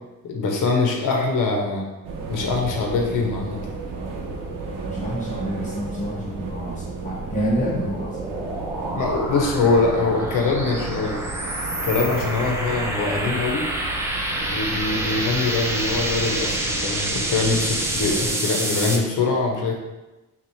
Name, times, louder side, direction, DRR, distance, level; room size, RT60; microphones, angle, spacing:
voice 1, 0.2-1.8 2.3-3.6 8.8-13.7 14.5-19.7, left 3 dB, 70° left, 1 dB, 0.9 m, -23 dB
sound 1, 2.0-18.3, right 3 dB, 80° right, 0.8 m, -33 dB
voice 2, 4.8-8.5, right 1 dB, 25° left, -6 dB, 1.2 m, -28 dB
sound 2, 7.2-19.0, right 1 dB, 10° right, 0.4 m, -28 dB
5.7 x 2.5 x 3.2 m, 1.1 s
cardioid pair, 155°, 33 cm